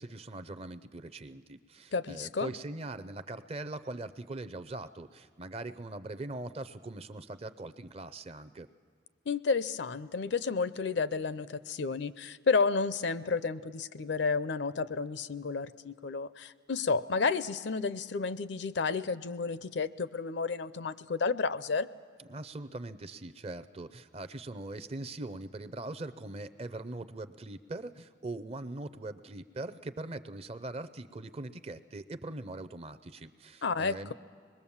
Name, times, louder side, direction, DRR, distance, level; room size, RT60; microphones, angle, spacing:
voice 1, 0.0-8.7 22.2-34.1, right 2 dB, 30° right, 12 dB, 0.5 m, -41 dB
voice 2, 1.9-2.5 9.3-21.9 33.6-34.1, left 4 dB, 60° left, 15 dB, 0.5 m, -31 dB
25.5 x 21.0 x 7.2 m, 2.1 s
head